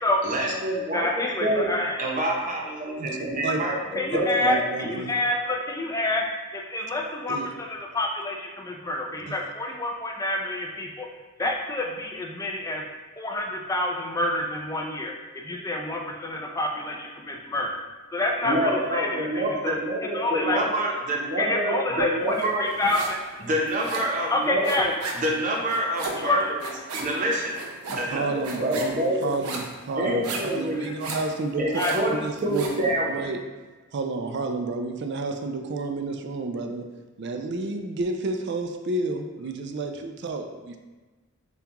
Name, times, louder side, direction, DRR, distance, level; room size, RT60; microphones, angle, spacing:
voice 1, 0.2-1.7 2.0-4.6 18.4-22.7 23.4-26.7 26.9-27.6 27.9-29.4 29.9-30.9 31.6-33.3, right 1 dB, 35° right, -2 dB, 0.7 m, -27 dB
voice 2, 0.9-2.0 3.9-6.3 6.5-11.1 11.4-12.8 13.2-17.8 18.1-19.8 20.0-20.6 21.4-23.3 24.3-24.9 26.2-26.5 30.8-30.9 31.7-31.9, left 2 dB, 15° left, 1 dB, 0.4 m, -28 dB
voice 3, 4.1-5.1 7.3-7.5 9.3-9.4 27.9-30.3 30.5-33.4 33.9-36.8 37.2-40.8, right 3 dB, 50° right, 5 dB, 0.3 m, -30 dB
sound 1, 22.4-23.3 23.5-32.8, right 3 dB, 85° right, 0.7 m, -35 dB
6.9 x 2.3 x 2.9 m, 1.3 s
head